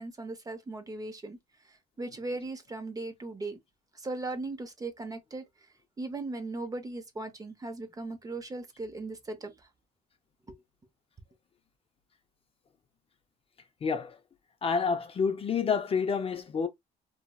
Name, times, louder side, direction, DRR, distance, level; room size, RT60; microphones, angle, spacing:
voice 1, 0.0-1.4 1.6-3.6 3.9-5.7 6.0-9.7 10.5-10.6, right 2 dB, 20° right, 0.7 m, -38 dB
voice 2, 13.8-14.1 14.6-16.7, left 5 dB, 35° left, 0.5 m, -28 dB
3.0 x 2.7 x 2.2 m
cardioid pair, 110°, 17 cm